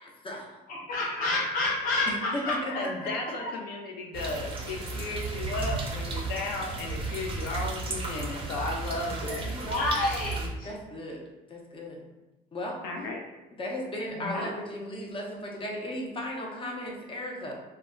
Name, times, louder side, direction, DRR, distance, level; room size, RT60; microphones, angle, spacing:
voice 1, 0.0-0.6 2.1-3.1 10.6-11.2 11.5-12.0 12.5-12.8 13.6-17.5, left 1 dB, 30° left, 0 dB, 0.6 m, -36 dB
voice 2, 0.7-3.5 9.3-9.4 9.6-10.7 14.1-14.5, left 2 dB, 55° left, -6 dB, 0.9 m, -30 dB
voice 3, 2.7-9.8 12.8-13.2, left 3 dB, 85° left, 1 dB, 0.4 m, -35 dB
sound 1, 4.1-10.5, right 3 dB, 35° right, 0.5 m, -34 dB
2.2 x 2.0 x 3.5 m, 1.1 s
cardioid pair, 110°, 17 cm